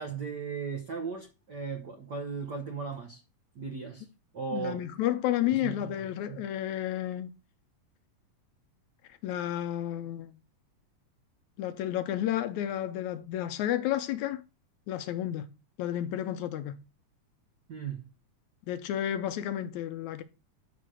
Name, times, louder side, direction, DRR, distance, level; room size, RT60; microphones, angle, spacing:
voice 1, 0.0-3.2 3.5-4.1 4.3-4.8 5.6-6.4 17.7-18.1, right 5 dB, 85° right, 0.9 m, -37 dB
voice 2, 4.5-7.3 9.2-10.4 11.6-14.4 14.9-15.5 15.8-16.8 18.7-20.2, left 12 dB, 75° left, 1.9 m, -31 dB
11.5 x 4.0 x 6.2 m
omnidirectional pair, 3.7 m